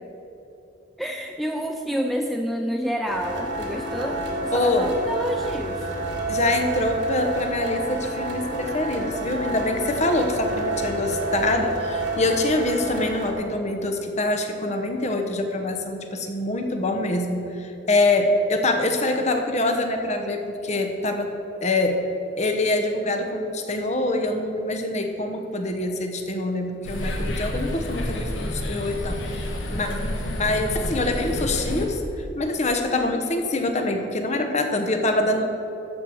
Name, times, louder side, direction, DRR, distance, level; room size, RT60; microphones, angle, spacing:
voice 1, 1.0-5.9, equal, ahead, 3 dB, 0.4 m, -28 dB
sound 1, 3.1-13.3, right 2 dB, 60° right, 1.6 m, -29 dB
voice 2, 4.5-4.9 6.3-21.3 21.6-22.0 22.4-29.9 30.4-35.6, left 2 dB, 35° left, 5 dB, 1.0 m, -25 dB
sound 2, 26.8-31.9, left 1 dB, 75° left, 1.6 m, -29 dB
13.5 x 4.7 x 7.6 m, 2.9 s
head